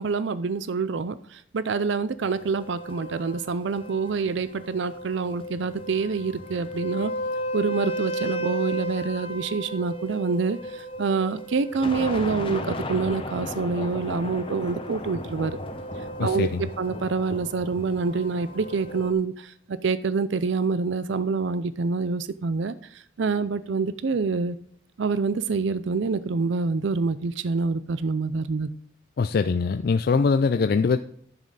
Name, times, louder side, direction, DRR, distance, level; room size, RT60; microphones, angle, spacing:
voice 1, 0.0-7.1 7.5-15.6 16.2-24.6 25.0-28.7, right 4 dB, 65° right, 15 dB, 0.5 m, -26 dB
sound 1, 2.2-19.1, equal, 25° left, 0.9 m, -34 dB
voice 2, 16.2-16.6 29.2-31.0, left 4 dB, 50° left, 10 dB, 0.4 m, -22 dB
11.0 x 7.4 x 4.0 m, 0.64 s
head